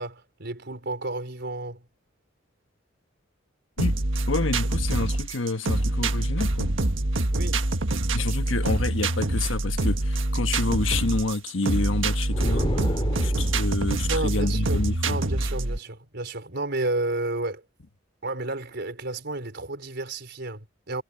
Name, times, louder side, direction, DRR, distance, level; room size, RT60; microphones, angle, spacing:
voice 1, 0.0-1.8 7.3-7.7 14.1-17.6 18.2-21.0, right 2 dB, 60° right, 4.7 m, -32 dB
sound 1, 3.8-15.8, right 1 dB, 80° right, 1.5 m, -25 dB
voice 2, 4.3-6.7 8.1-15.2, left 3 dB, 90° left, 1.3 m, -29 dB
sound 2, 12.3-13.9, equal, 25° left, 5.8 m, -30 dB
head